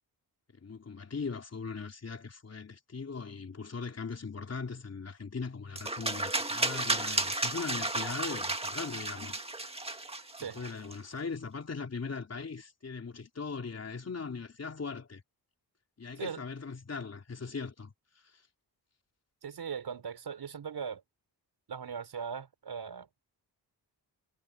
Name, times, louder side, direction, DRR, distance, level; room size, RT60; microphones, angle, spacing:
voice 1, 0.6-9.4 10.4-15.2 16.0-17.9, left 5 dB, 40° left, 3.9 m, -39 dB
sound 1, 5.8-10.9, right 2 dB, 15° right, 1.9 m, -33 dB
voice 2, 19.4-21.0 21.7-23.1, right 6 dB, 75° right, 5.1 m, -39 dB
wide cardioid pair, 140°, 39 cm